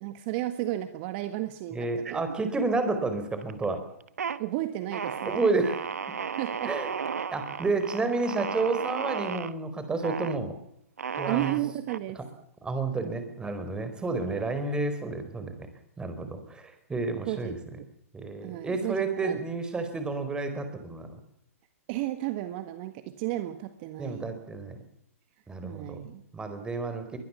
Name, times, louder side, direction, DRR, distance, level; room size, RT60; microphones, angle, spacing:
voice 1, 0.0-2.2 4.4-5.4 6.4-6.7 11.3-12.2 14.2-14.5 17.1-17.6 18.4-19.4 21.9-24.3 25.6-26.2, right 15 dB, 45° right, 10 dB, 1.7 m, -33 dB
voice 2, 1.7-3.8 5.2-5.8 6.6-7.0 7.3-10.6 11.2-11.6 12.2-12.3 12.6-15.6 16.0-17.6 18.1-21.2 24.0-24.8 25.5-26.1 26.3-27.2, right 3 dB, 10° right, 8 dB, 4.5 m, -30 dB
sound 1, 2.1-2.8 3.1-3.6 4.0-4.4 4.9-9.5 10.0-10.4 11.0-12.0, right 6 dB, 85° right, 1.3 m, -34 dB
23.0 x 20.5 x 7.2 m, 0.71 s
hypercardioid pair, 130°, 8 cm